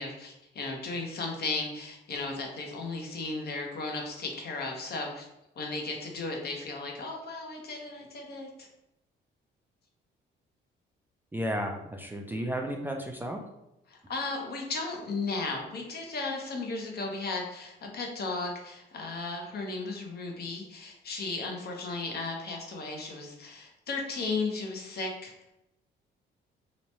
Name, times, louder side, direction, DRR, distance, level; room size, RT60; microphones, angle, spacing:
voice 1, 0.0-5.3 5.6-8.7 13.9-25.3, left 3 dB, 55° left, 1 dB, 0.7 m, -35 dB
voice 2, 11.3-13.4, equal, 10° right, 1 dB, 0.3 m, -33 dB
3.0 x 2.1 x 2.7 m, 0.86 s
cardioid pair, 90°, 20 cm